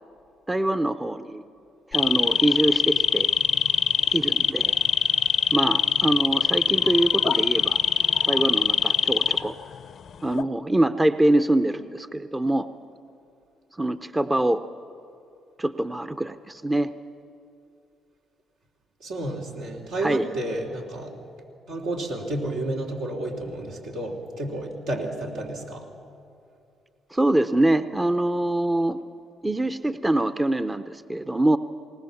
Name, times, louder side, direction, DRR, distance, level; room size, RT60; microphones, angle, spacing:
voice 1, 0.5-1.4 1.9-3.3 4.1-4.7 5.5-7.8 8.3-9.6 10.2-12.7 13.8-14.6 15.6-16.9 20.0-20.3 27.1-29.0 29.4-31.6, right 1 dB, 15° right, 12 dB, 0.7 m, -24 dB
sound 1, 1.9-9.8 10.1-10.4, left 7 dB, 55° left, 0.6 m, -22 dB
voice 2, 19.0-21.1 21.7-25.9, right 1 dB, 80° right, -1 dB, 3.4 m, -31 dB
19.5 x 19.5 x 7.2 m, 2.5 s
supercardioid pair, 60°, 0 cm